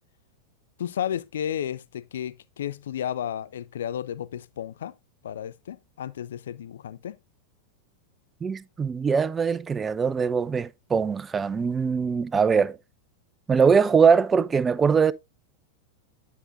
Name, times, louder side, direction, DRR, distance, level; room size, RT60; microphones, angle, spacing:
voice 1, 0.8-4.9 5.2-7.2, left 10 dB, 60° left, 0.3 m, -33 dB
voice 2, 8.4-12.8 13.5-15.1, right 6 dB, 15° right, 0.3 m, -22 dB
9.9 x 5.9 x 2.5 m
figure-of-eight pair, 90°, 0 cm